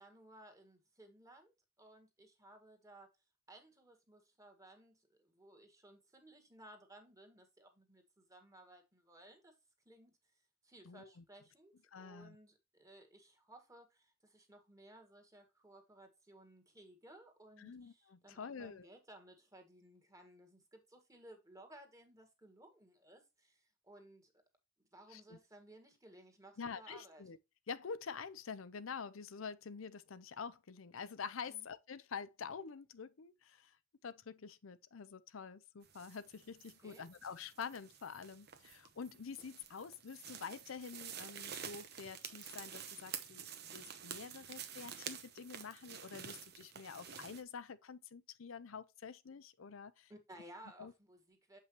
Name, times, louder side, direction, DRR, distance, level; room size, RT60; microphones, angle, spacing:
voice 1, 0.0-3.1 3.5-9.5 9.8-10.1 10.6-24.3 24.8-27.2 31.5-31.7 36.8-37.1 50.1-51.6, right 1 dB, 15° right, 1.7 m, -59 dB
voice 2, 10.8-11.2 11.9-12.4 17.6-18.9 25.1-25.4 26.6-27.4 27.7-33.8 34.0-50.1 50.8-50.9, left 6 dB, 85° left, 0.6 m, -47 dB
sound 1, 35.8-47.4, right 8 dB, 55° right, 1.0 m, -49 dB
7.3 x 5.6 x 3.0 m
head